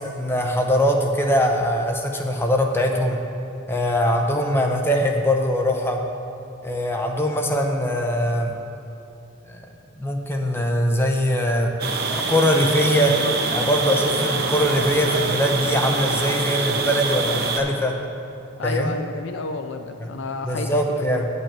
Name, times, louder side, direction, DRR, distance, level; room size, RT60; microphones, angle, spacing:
voice 1, 0.1-3.2 3.7-6.0 6.6-8.6 9.5-9.6 10.0-11.7 12.1-13.2 13.5-17.9 18.6-19.0 20.0-20.1 20.4-21.3, equal, 10° left, 2 dB, 0.7 m, -22 dB
sound 1, 11.8-17.6, right 4 dB, 50° right, 0.8 m, -25 dB
voice 2, 18.6-21.2, left 3 dB, 60° left, 7 dB, 0.5 m, -31 dB
8.5 x 5.5 x 7.4 m, 2.7 s
head